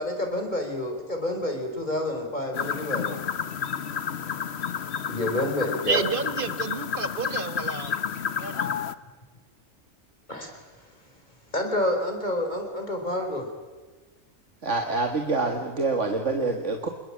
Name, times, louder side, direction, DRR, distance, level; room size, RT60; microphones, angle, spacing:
voice 1, 0.0-3.2 5.1-6.0 10.3-10.6 11.5-13.5, left 1 dB, 35° left, 3 dB, 5.0 m, -28 dB
sound 1, 2.5-8.9, left 7 dB, 55° left, 1.2 m, -31 dB
voice 2, 5.9-8.0 8.4-8.7, right 4 dB, 40° right, 12 dB, 1.6 m, -30 dB
voice 3, 14.6-16.9, right 3 dB, 60° right, 4 dB, 2.1 m, -26 dB
27.0 x 21.5 x 8.7 m, 1.3 s
omnidirectional pair, 1.4 m